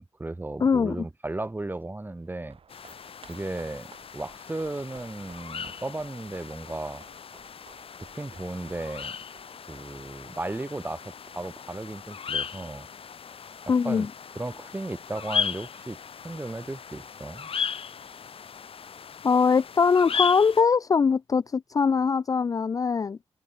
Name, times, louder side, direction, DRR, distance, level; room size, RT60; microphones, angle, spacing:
voice 1, 0.0-2.6 3.3-7.0 8.0-9.1 9.7-12.9 13.7-14.1 14.3-16.0 16.2-17.5, right 2 dB, 20° right, 3.5 m, -35 dB
voice 2, 0.6-1.0 13.7-14.1 19.2-23.2, left 5 dB, 35° left, 0.4 m, -22 dB
sound 1, 2.2-12.7 13.0-13.1, right 6 dB, 60° right, 6.9 m, -56 dB
sound 2, 2.7-20.6, left 7 dB, 60° left, 3.7 m, -37 dB
cardioid pair, 80°, 11 cm